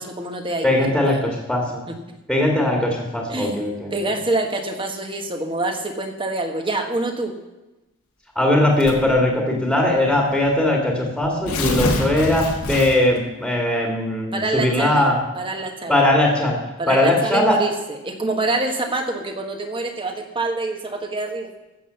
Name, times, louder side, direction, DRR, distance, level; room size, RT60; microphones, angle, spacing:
voice 1, 0.0-1.2 1.9-2.0 3.3-3.6 3.9-7.3 14.3-15.1 15.3-16.0 16.8-21.5, right 2 dB, 25° right, 4 dB, 1.5 m, -26 dB
voice 2, 0.6-1.8 2.3-3.9 8.4-15.2 15.9-16.6 16.9-17.6, left 1 dB, ahead, -1 dB, 2.1 m, -19 dB
Tearing, 8.8-9.2 10.1-10.2 10.5-10.6 11.2-13.2, left 2 dB, 85° left, 2.4 m, -25 dB
14.5 x 7.8 x 6.9 m, 1.0 s
head